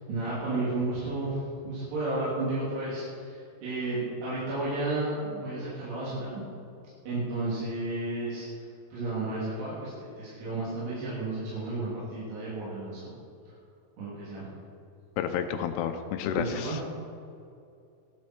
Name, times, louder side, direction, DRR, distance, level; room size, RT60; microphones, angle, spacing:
voice 1, 0.1-6.4 7.1-8.5 8.9-9.9 10.2-13.1 14.0-14.5 16.4-16.9, right 2 dB, 90° right, -8 dB, 5.0 m, -32 dB
voice 2, 15.2-16.8, left 8 dB, 85° left, 6 dB, 2.8 m, -30 dB
16.5 x 11.0 x 4.5 m, 2.6 s
omnidirectional pair, 4.7 m